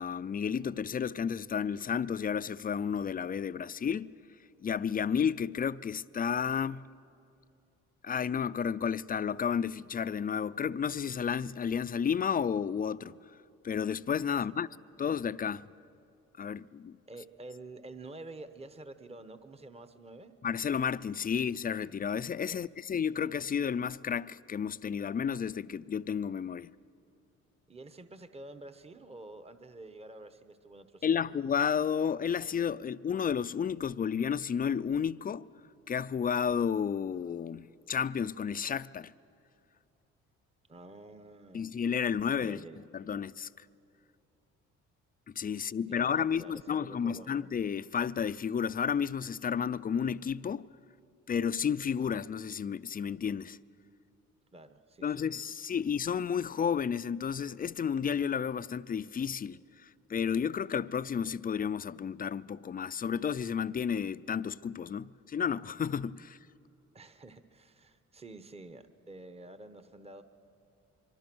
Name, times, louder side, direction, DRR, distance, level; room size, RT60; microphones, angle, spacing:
voice 1, 0.0-4.1 4.6-6.9 8.0-13.2 13.6-14.7 15.0-15.6 16.4-17.0 20.4-26.7 31.0-35.5 35.9-39.1 41.5-42.6 42.9-43.6 45.4-50.7 51.3-53.6 55.0-66.4, left 7 dB, 30° left, 0.5 m, -32 dB
voice 2, 17.1-20.3 22.5-22.7 27.7-31.3 40.7-41.7 42.4-42.8 45.5-47.3 54.5-55.3 66.9-70.2, right 2 dB, 20° right, 1.1 m, -49 dB
24.0 x 24.0 x 6.2 m
cardioid pair, 90°, 30 cm